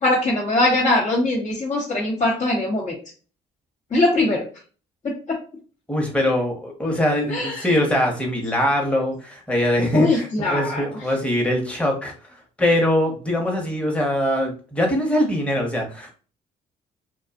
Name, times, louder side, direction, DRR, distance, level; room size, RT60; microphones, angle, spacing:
voice 1, 0.0-3.0 3.9-4.5 5.0-5.4 7.3-7.7 9.9-10.8, left 2 dB, 40° left, -4 dB, 1.0 m, -21 dB
voice 2, 5.9-16.1, left 1 dB, 5° left, 1 dB, 1.0 m, -22 dB
2.5 x 2.3 x 2.4 m, 0.38 s
hypercardioid pair, 55°, 18 cm